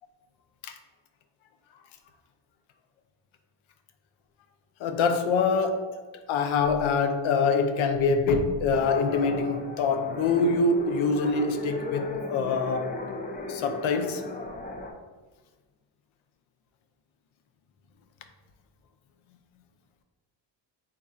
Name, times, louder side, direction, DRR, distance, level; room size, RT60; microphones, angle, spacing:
voice 1, 4.8-5.9 6.3-12.9 13.5-14.2, left 4 dB, 85° left, 7 dB, 0.6 m, -25 dB
sound 1, 8.7-14.9, left 2 dB, 20° left, 0.3 m, -36 dB
3.7 x 2.3 x 4.1 m, 1.3 s
cardioid pair, 95°, 47 cm